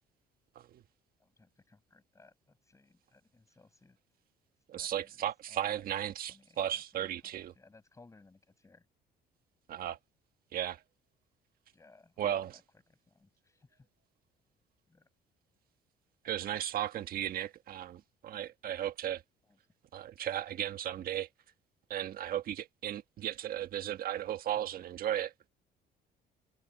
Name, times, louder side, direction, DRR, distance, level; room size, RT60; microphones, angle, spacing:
voice 1, 1.2-4.0 4.7-5.2 5.5-8.9 11.7-12.6 12.9-13.9 14.9-15.1 19.5-19.6 24.5-24.8, left 3 dB, 20° left, 7.0 m, -62 dB
voice 2, 4.7-7.5 9.7-10.0 10.5-10.8 12.2-12.6 16.2-19.2 19.9-21.3 21.9-25.3, right 11 dB, 60° right, 1.4 m, -35 dB
cardioid pair, 110°, 17 cm